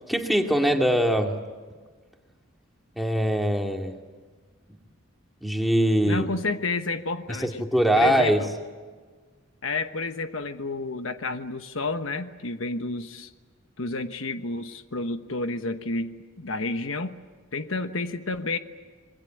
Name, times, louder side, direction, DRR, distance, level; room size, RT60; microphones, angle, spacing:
voice 1, 0.1-1.3 3.0-4.0 5.4-6.3 7.4-8.4, equal, ahead, 2 dB, 2.2 m, -22 dB
voice 2, 6.0-7.5 7.9-8.5 9.6-13.3 13.8-17.2 17.5-18.6, left 3 dB, 70° left, 9 dB, 1.2 m, -30 dB
26.5 x 22.0 x 9.2 m, 1.4 s
head